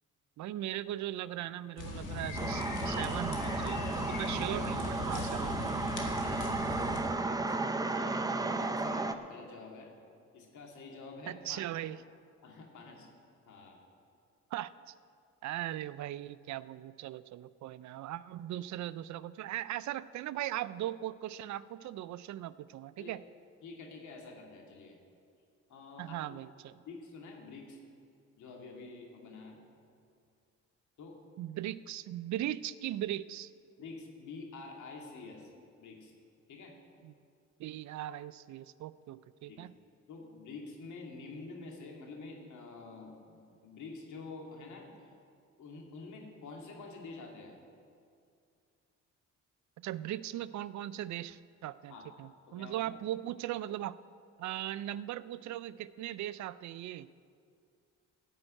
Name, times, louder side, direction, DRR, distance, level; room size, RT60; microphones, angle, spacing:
voice 1, 0.4-6.4 11.3-12.0 14.5-14.9 15.4-23.2 26.0-26.7 31.4-33.5 37.0-37.1 37.6-39.7 49.8-54.0 54.4-57.1, right 13 dB, 70° right, 16 dB, 0.5 m, -39 dB
sound 1, 1.8-7.0, left 2 dB, 90° left, 2.0 m, -39 dB
sound 2, 2.4-9.2, right 3 dB, 10° right, 0.7 m, -34 dB
voice 2, 7.2-9.9 10.3-11.6 12.4-13.1 13.5-13.8 23.0-23.2 23.6-25.0 25.7-26.4 26.9-27.8 28.4-29.6 31.0-31.2 33.8-35.5 35.8-36.1 36.5-36.7 39.5-39.6 40.1-45.1 45.6-47.5 51.9-52.1 52.5-52.8, left 3 dB, 75° left, 1 dB, 2.4 m, -48 dB
15.5 x 5.4 x 8.9 m, 2.4 s
cardioid pair, 90°, 30 cm